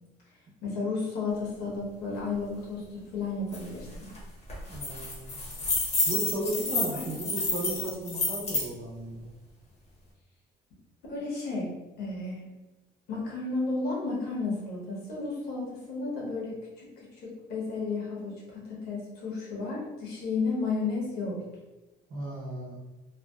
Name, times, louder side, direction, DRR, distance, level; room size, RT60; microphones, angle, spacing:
voice 1, 0.6-4.1 6.6-7.3 11.1-11.7 12.0-12.5 13.1-21.4, left 3 dB, 75° left, -4 dB, 1.0 m, -33 dB
sound 1, 3.5-3.6 3.9-4.2 4.5-8.7, left 2 dB, 40° left, 0.9 m, -30 dB
voice 2, 4.7-5.4 6.0-9.2 22.1-22.8, right 1 dB, 55° right, -4 dB, 0.9 m, -35 dB
2.6 x 2.2 x 2.3 m, 1.1 s
cardioid pair, 110°, 17 cm